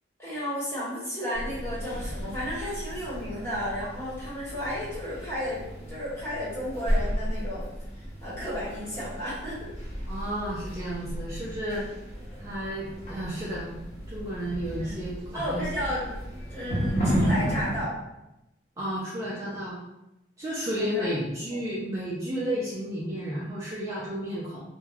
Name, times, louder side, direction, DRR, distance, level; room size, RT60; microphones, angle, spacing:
voice 1, 0.2-7.7 8.2-9.7 14.8-15.0 15.3-16.0 16.5-17.9 20.8-21.1, equal, 15° left, -10 dB, 1.1 m, -33 dB
sound 1, 1.3-17.8, equal, 35° left, 0.8 m, -33 dB
voice 2, 10.1-11.8 12.4-13.7 14.1-15.7 18.8-19.8 20.4-24.6, equal, 15° right, -8 dB, 0.4 m, -32 dB
2.9 x 2.1 x 2.3 m, 0.92 s
head